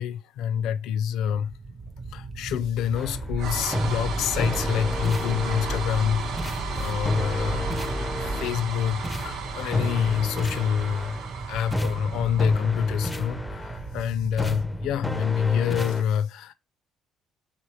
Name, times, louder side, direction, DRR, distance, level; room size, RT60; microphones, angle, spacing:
voice 1, 0.0-1.5 2.1-7.7 8.2-11.2 11.5-16.5, left 8 dB, 80° left, 0.4 m, -27 dB
sound 1, 1.3-14.7, right 3 dB, 40° right, 0.6 m, -38 dB
sound 2, 2.9-13.4, right 3 dB, 80° right, 1.0 m, -34 dB
sound 3, 3.0-3.3 3.7-6.1 6.4-8.7 9.0-11.3 11.7-14.0 14.4-16.0, left 1 dB, 10° left, 0.4 m, -32 dB
4.1 x 3.4 x 3.0 m
cardioid pair, 125°, 0 cm